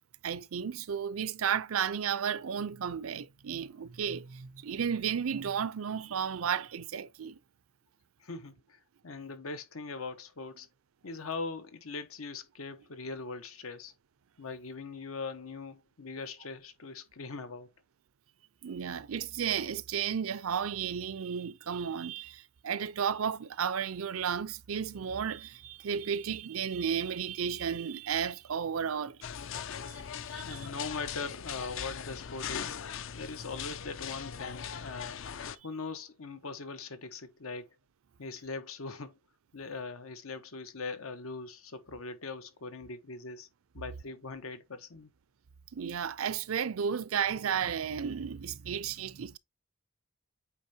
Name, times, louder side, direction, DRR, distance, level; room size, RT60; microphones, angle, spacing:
voice 1, 0.2-7.4 18.6-29.2 29.9-30.0 30.3-30.7 45.7-49.4, right 7 dB, 80° right, 0.5 m, -33 dB
voice 2, 8.2-10.7 11.0-13.9 14.4-17.7 30.3-32.8 33.1-35.2 35.6-37.7 38.2-39.1 39.5-43.5 43.7-45.1, left 4 dB, 85° left, 1.1 m, -41 dB
sound 1, 29.2-35.6, left 8 dB, 65° left, 0.5 m, -40 dB
8.3 x 4.3 x 2.8 m
head